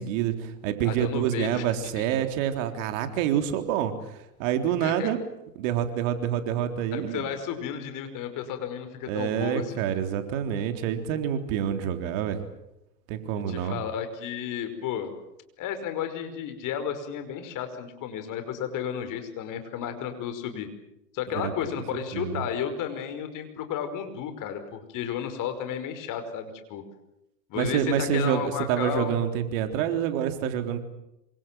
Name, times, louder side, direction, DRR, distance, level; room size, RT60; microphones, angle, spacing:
voice 1, 0.0-5.2 5.6-7.3 9.1-12.4 13.1-13.8 21.3-21.5 21.9-22.4 27.6-30.8, right 9 dB, 55° right, 7 dB, 3.8 m, -27 dB
voice 2, 0.8-1.7 2.0-2.1 4.8-5.1 6.9-9.7 11.8-11.9 13.5-15.1 15.6-20.7 21.1-26.8 27.5-29.1, left 8 dB, 40° left, 9 dB, 5.5 m, -33 dB
27.0 x 25.5 x 7.6 m, 0.84 s
hypercardioid pair, 105°, 48 cm